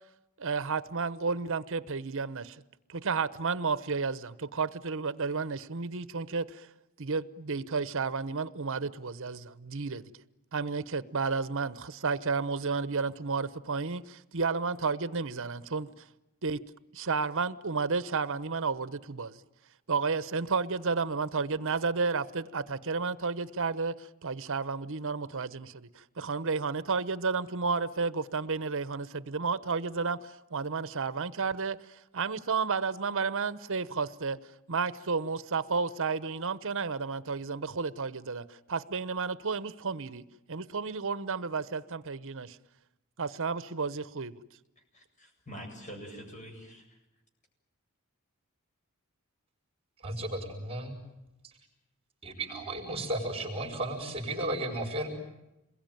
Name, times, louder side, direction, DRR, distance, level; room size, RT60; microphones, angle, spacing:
voice 1, 0.4-2.6 2.9-6.7 7.0-10.1 10.5-16.0 16.4-16.6 16.9-19.4 19.9-31.8 32.1-34.4 34.7-40.2 40.5-42.6 43.2-44.4, right 4 dB, 60° right, 0.9 m, -32 dB
voice 2, 44.9-47.0, equal, 35° left, 8.0 m, -45 dB
voice 3, 50.0-51.0 51.4-51.5 52.2-55.1, right 1 dB, 25° right, 5.2 m, -34 dB
28.0 x 21.5 x 9.2 m
head